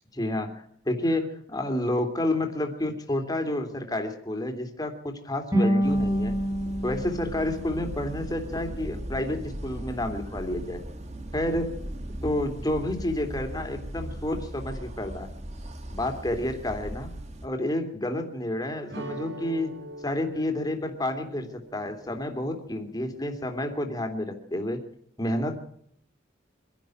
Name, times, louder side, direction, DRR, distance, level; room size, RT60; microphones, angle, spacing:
voice 1, 0.1-6.4 6.8-10.8 11.3-11.7 12.2-15.3 15.9-17.1 17.4-19.7 20.0-24.8 25.2-25.6, left 1 dB, 20° left, 4 dB, 2.8 m, -30 dB
sound 1, 5.5-8.6, equal, 20° right, 5.2 m, -27 dB
sound 2, 5.8-17.5, right 1 dB, 35° right, 1.8 m, -38 dB
sound 3, 18.9-23.8, equal, 60° right, 3.5 m, -43 dB
25.0 x 11.5 x 9.2 m, 0.67 s
head